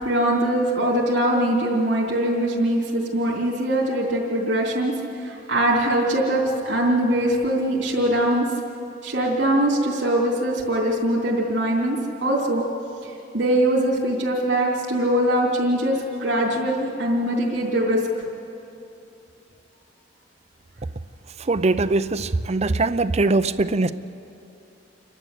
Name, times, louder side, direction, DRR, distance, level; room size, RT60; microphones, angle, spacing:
voice 1, 0.0-4.9 5.2-8.5 9.0-12.6 13.0-18.2, right 1 dB, 75° right, -5 dB, 3.5 m, -22 dB
voice 2, 21.4-23.9, right 3 dB, 35° right, 11 dB, 0.6 m, -21 dB
29.0 x 12.0 x 8.2 m, 2.8 s
head